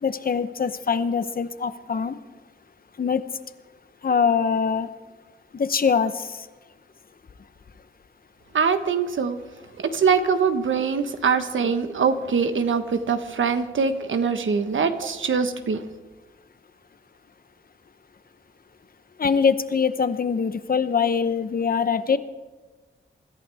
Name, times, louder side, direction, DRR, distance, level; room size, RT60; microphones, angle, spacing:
voice 1, 0.0-2.2 3.0-3.2 4.0-4.9 5.5-6.5 19.2-22.2, left 6 dB, 50° left, 12 dB, 0.8 m, -23 dB
voice 2, 8.5-9.4 9.8-15.8, right 5 dB, 90° right, 8 dB, 1.2 m, -23 dB
25.0 x 14.5 x 3.5 m, 1.3 s
wide cardioid pair, 165°, 20 cm